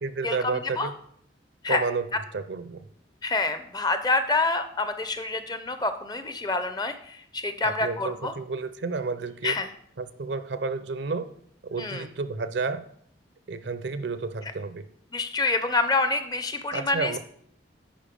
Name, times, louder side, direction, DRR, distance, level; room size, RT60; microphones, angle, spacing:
voice 1, 0.0-0.9 1.7-2.8 7.6-9.6 10.0-11.3 11.6-12.9 13.5-14.8 16.7-17.2, right 4 dB, 65° right, 11 dB, 0.6 m, -31 dB
voice 2, 3.2-8.3 9.4-9.7 11.8-12.1 15.1-17.2, left 3 dB, 20° left, 10 dB, 0.5 m, -27 dB
10.5 x 4.4 x 5.2 m, 0.66 s
head